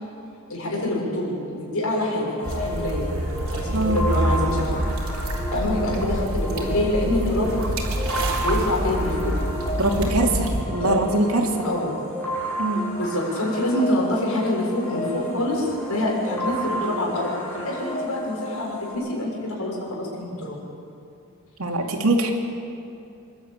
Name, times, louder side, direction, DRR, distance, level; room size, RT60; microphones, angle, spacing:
voice 1, 0.5-3.1 3.5-4.7 5.5-7.6 8.4-9.3 9.8-10.1 10.5-11.3 11.6-11.9 13.0-20.6, left 1 dB, 80° left, -3 dB, 6.6 m, -26 dB
sound 1, 2.4-18.9, equal, 10° left, 7.2 m, -32 dB
sound 2, 2.4-10.6, right 1 dB, 70° right, 3.6 m, -27 dB
voice 2, 9.8-11.5 12.6-12.8 21.6-22.3, right 2 dB, 90° right, 2 dB, 2.7 m, -22 dB
26.5 x 12.5 x 9.0 m, 2.6 s
head